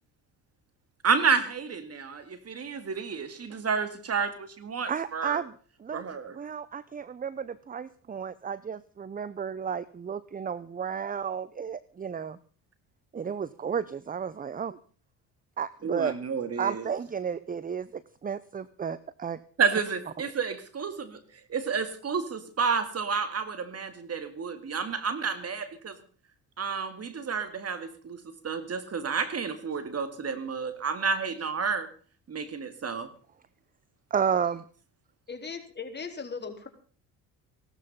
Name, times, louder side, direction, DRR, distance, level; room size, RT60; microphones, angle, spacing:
voice 1, 1.0-5.4 5.9-6.4 15.8-16.9 19.6-21.2 21.5-26.0 26.6-28.2 28.4-31.9 32.3-33.1, right 5 dB, 40° right, 11 dB, 2.2 m, -30 dB
voice 2, 4.9-5.5 5.8-6.0 6.4-12.4 13.1-14.8 15.6-16.2 16.6-17.9 18.2-19.4 34.1-34.6, right 7 dB, 20° right, 18 dB, 0.7 m, -32 dB
voice 3, 35.3-36.7, left 5 dB, 25° left, 4 dB, 3.8 m, -38 dB
17.0 x 13.0 x 5.5 m, 0.41 s
supercardioid pair, 75°, 38 cm